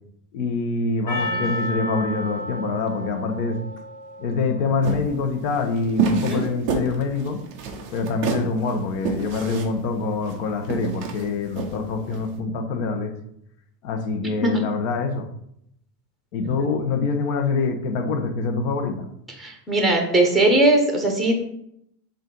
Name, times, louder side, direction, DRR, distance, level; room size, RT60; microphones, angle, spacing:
voice 1, 0.3-3.6 4.2-7.4 7.9-13.1 13.8-15.3 16.3-19.1, left 4 dB, 55° left, 5 dB, 1.1 m, -25 dB
Percussion, 1.1-5.6, left 1 dB, 35° left, 2.3 m, -33 dB
sound 1, 4.8-12.3, right 5 dB, 25° right, 0.3 m, -28 dB
voice 2, 19.4-21.4, right 2 dB, ahead, 2 dB, 0.7 m, -20 dB
7.2 x 2.6 x 5.3 m, 0.75 s
supercardioid pair, 155°, 50 cm